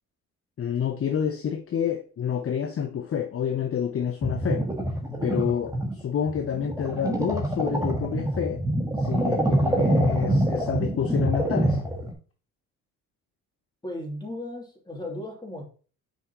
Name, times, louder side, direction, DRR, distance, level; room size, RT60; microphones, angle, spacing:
voice 1, 0.6-4.6 5.2-8.6 9.0-11.8, left 8 dB, 40° left, 0.8 m, -28 dB
sound 1, 4.2-12.1, right 1 dB, 10° right, 1.7 m, -26 dB
voice 2, 13.8-15.6, left 1 dB, 15° left, 2.9 m, -36 dB
7.6 x 5.0 x 3.0 m
supercardioid pair, 75°, 33 cm